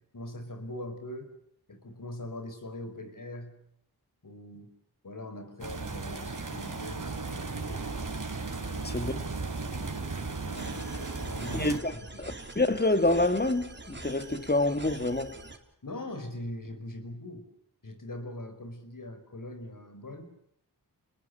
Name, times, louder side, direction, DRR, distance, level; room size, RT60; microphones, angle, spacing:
voice 1, 0.1-1.3 1.7-3.5 4.2-4.7 5.0-7.8 8.6-9.0 9.7-10.0 10.5-12.4 15.8-17.5 17.8-20.3, left 1 dB, 55° left, 5.2 m, -42 dB
sound 1, 5.6-11.8, right 3 dB, 55° right, 3.8 m, -36 dB
voice 2, 8.8-9.2 11.5-11.9 12.2-15.4, left 2 dB, 25° left, 2.2 m, -27 dB
sound 2, 10.6-15.6, right 2 dB, 30° right, 4.0 m, -45 dB
28.5 x 20.5 x 6.8 m
wide cardioid pair, 60°, 39 cm